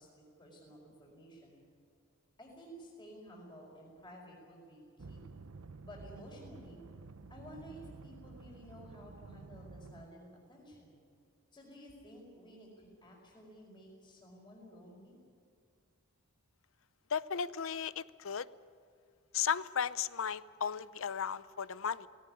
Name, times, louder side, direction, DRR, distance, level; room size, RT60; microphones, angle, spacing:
voice 1, 0.0-1.6 2.4-5.2 5.8-6.8 7.3-11.0 11.5-15.2, equal, 20° left, -2 dB, 5.0 m, -53 dB
sound 1, 5.0-10.1, right 3 dB, 75° right, 0.8 m, -51 dB
voice 2, 17.1-18.5 19.3-22.1, left 7 dB, 65° left, 17 dB, 0.6 m, -35 dB
18.0 x 18.0 x 9.9 m, 2.3 s
head